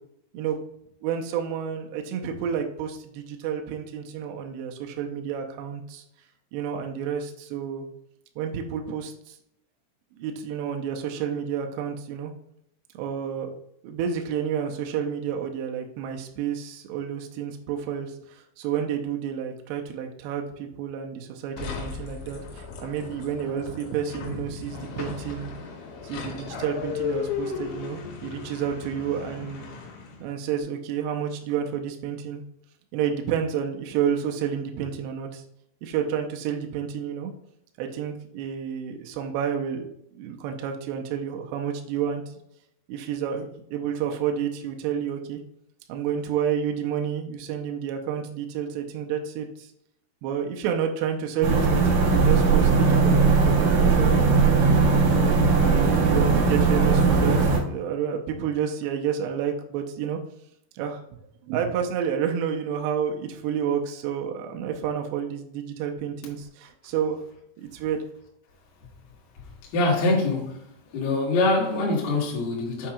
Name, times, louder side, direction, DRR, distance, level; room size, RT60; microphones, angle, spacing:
voice 1, 1.0-6.0 6.5-7.9 8.4-9.4 10.1-12.3 12.9-13.5 13.8-25.5 26.0-29.6 30.2-32.4 32.9-35.4 35.8-37.3 37.8-39.9 40.2-42.2 42.9-45.4 45.9-49.7 50.2-54.3 54.9-60.2 60.7-61.0 61.5-67.2 67.6-68.0, right 8 dB, 85° right, 2.5 m, -30 dB
sound 1, 21.6-30.3, left 6 dB, 85° left, 3.9 m, -35 dB
sound 2, 51.4-57.6, right 4 dB, 65° right, 2.2 m, -19 dB
voice 2, 69.7-70.6 70.9-72.9, left 2 dB, 60° left, 2.9 m, -24 dB
7.6 x 5.8 x 2.4 m
omnidirectional pair, 5.6 m